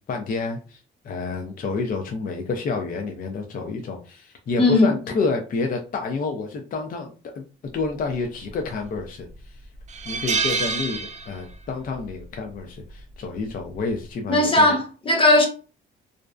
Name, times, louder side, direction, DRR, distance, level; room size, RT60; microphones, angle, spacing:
voice 1, 0.1-7.4 7.7-9.5 10.0-14.8, left 4 dB, 45° left, 0.4 m, -29 dB
voice 2, 4.6-4.9 14.3-15.5, left 2 dB, 25° left, 0.8 m, -17 dB
sound 1, 8.5-9.0 9.4-9.5 9.9-11.7 12.0-12.2 13.5-13.8, right 4 dB, 35° right, 0.4 m, -27 dB
2.5 x 2.1 x 2.3 m
cardioid pair, 90°, 20 cm